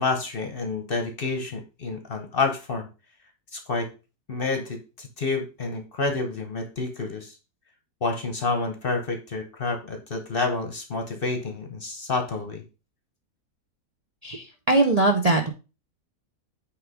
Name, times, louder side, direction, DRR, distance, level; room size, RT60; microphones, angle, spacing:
voice 1, 0.0-2.9 3.5-3.9 4.3-7.4 8.0-12.6, left 3 dB, 45° left, 6 dB, 1.0 m, -29 dB
voice 2, 14.2-15.5, right 2 dB, 35° right, 2 dB, 0.6 m, -21 dB
8.0 x 3.4 x 4.8 m, 0.31 s
omnidirectional pair, 1.6 m